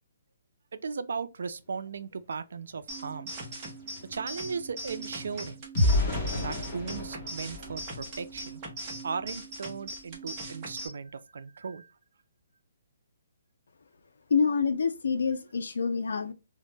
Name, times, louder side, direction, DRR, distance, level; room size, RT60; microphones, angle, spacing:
voice 1, 0.7-3.3 4.1-5.6 6.4-8.6 9.0-11.9, right 5 dB, 70° right, 0.3 m, -37 dB
sound 1, 2.8-2.9 3.2-8.7 9.2-9.4 9.7-10.0, left 1 dB, 30° left, 0.8 m, -32 dB
sound 2, 2.9-10.9, right 2 dB, 20° right, 0.6 m, -41 dB
voice 2, 14.3-16.3, left 5 dB, 80° left, 0.3 m, -27 dB
2.1 x 2.0 x 3.1 m
hypercardioid pair, 175°, 0 cm